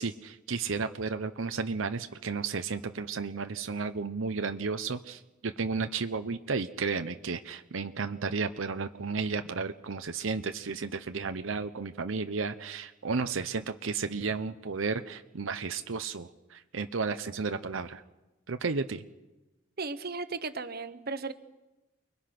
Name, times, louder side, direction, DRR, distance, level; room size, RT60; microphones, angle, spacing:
voice 1, 0.0-18.0 18.5-19.0, right 4 dB, 75° right, 9 dB, 0.8 m, -33 dB
voice 2, 19.8-21.3, right 4 dB, 50° right, 11 dB, 1.2 m, -35 dB
29.0 x 21.5 x 6.0 m, 1.1 s
head